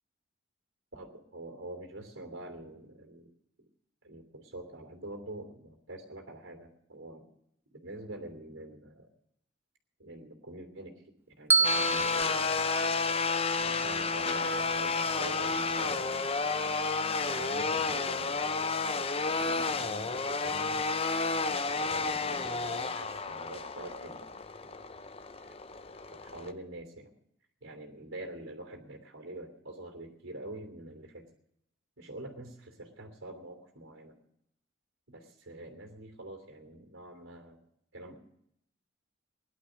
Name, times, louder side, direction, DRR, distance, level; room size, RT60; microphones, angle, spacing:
voice 1, 0.9-3.3 4.0-7.2 7.7-9.1 10.0-11.0 11.4-12.8 13.5-16.7 17.2-18.7 19.4-20.8 21.6-24.3 26.1-27.1 27.6-31.3 32.0-34.2 35.1-37.6 37.9-38.2, right 1 dB, 80° right, 4 dB, 2.9 m, -45 dB
Bell, 11.5-13.7, right 4 dB, 10° right, 0.5 m, -30 dB
sound 1, 11.6-26.5, left 4 dB, 30° left, 0.7 m, -31 dB
18.0 x 11.5 x 6.3 m, 0.77 s
head